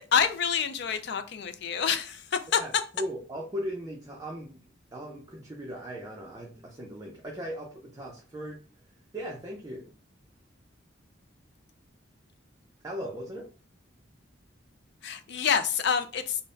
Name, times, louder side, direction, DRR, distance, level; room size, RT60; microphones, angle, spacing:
voice 1, 0.0-2.6 15.0-16.4, left 7 dB, 60° left, 0.4 m, -27 dB
voice 2, 2.5-4.6 4.9-8.6 9.1-9.9 12.8-13.5, equal, 20° right, 0.6 m, -38 dB
3.9 x 2.2 x 3.8 m
head